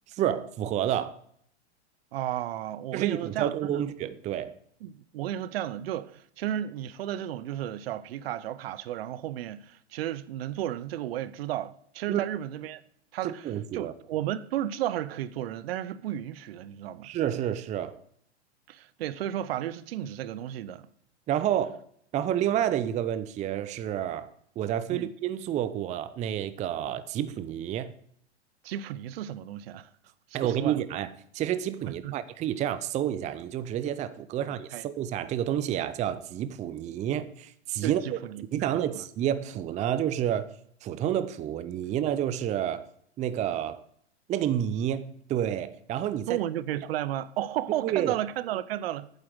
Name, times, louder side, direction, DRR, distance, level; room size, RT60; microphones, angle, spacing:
voice 1, 0.1-1.2 2.9-4.5 12.1-12.2 13.2-13.9 17.0-18.0 21.3-21.8 22.1-24.3 24.6-27.9 30.3-31.1 31.3-38.0 38.4-40.5 40.8-42.9 43.2-43.8 44.3-46.4 47.8-48.1, right 10 dB, 20° right, 0.5 m, -29 dB
voice 2, 2.1-3.8 4.8-12.8 13.1-17.1 18.7-20.8 24.9-25.1 28.6-29.9 30.4-30.8 31.9-32.2 34.7-34.9 37.8-39.0 46.3-49.1, right 12 dB, 60° right, 0.7 m, -33 dB
9.0 x 7.5 x 6.2 m
hypercardioid pair, 105°, 34 cm